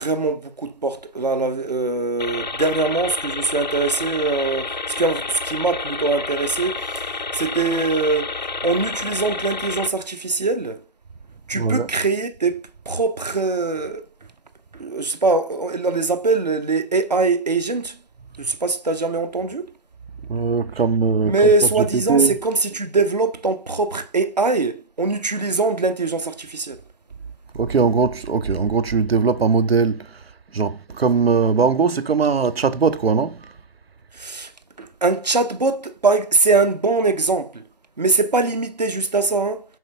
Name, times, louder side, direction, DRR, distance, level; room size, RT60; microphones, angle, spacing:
voice 1, 0.0-8.4 8.6-10.8 11.5-14.0 14.7-18.0 18.4-19.7 21.2-26.8 34.1-34.5 34.8-37.6 38.0-39.7, right 3 dB, 45° right, 0.5 m, -22 dB
sound 1, 2.2-9.9, left 4 dB, 50° left, 0.5 m, -29 dB
voice 2, 11.5-11.9 20.3-22.4 27.5-33.5, right 5 dB, 90° right, 0.6 m, -20 dB
4.4 x 4.1 x 2.8 m
figure-of-eight pair, 165°, 30 cm